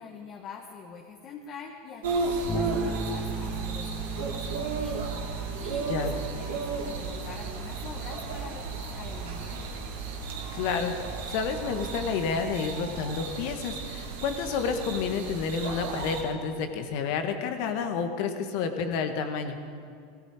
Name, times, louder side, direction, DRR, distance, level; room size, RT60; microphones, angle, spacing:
voice 1, 0.0-9.8, left 6 dB, 45° left, 2 dB, 1.4 m, -45 dB
sound 1, 2.0-16.2, right 3 dB, 75° right, 2.2 m, -34 dB
sound 2, 2.4-12.5, right 5 dB, 45° right, 2.2 m, -50 dB
Bass guitar, 2.5-12.4, right 4 dB, 15° left, 2.2 m, -37 dB
voice 2, 10.5-19.6, left 5 dB, 60° left, 7 dB, 1.6 m, -30 dB
17.5 x 15.0 x 5.0 m, 2.3 s
hypercardioid pair, 90°, 0 cm